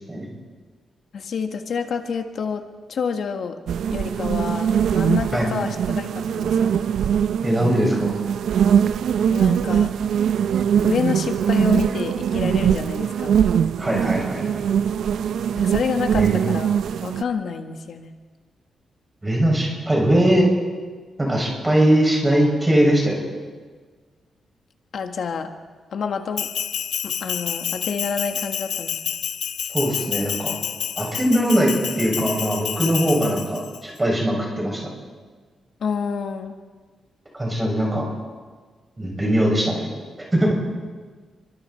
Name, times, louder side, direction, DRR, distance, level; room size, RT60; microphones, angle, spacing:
voice 1, 1.1-2.6 2.9-3.6 3.9-6.8 9.3-9.9 10.8-13.4 15.5-16.7 17.0-18.1 24.9-25.5 25.9-26.5 27.0-28.9 35.8-36.5, left 6 dB, 55° left, 5 dB, 1.6 m, -28 dB
sound 1, 3.7-17.2, right 8 dB, 80° right, 0.6 m, -21 dB
voice 2, 7.4-8.1 13.8-14.6 16.1-16.4 19.2-20.4 21.2-23.2 29.7-30.5 31.0-34.8 37.3-38.0 39.0-39.9 40.3-40.5, right 1 dB, 15° right, -2 dB, 6.6 m, -20 dB
Bell, 26.4-33.8, left 8 dB, 90° left, 0.9 m, -29 dB
29.0 x 24.5 x 4.4 m, 1.4 s
wide cardioid pair, 175°, 0 cm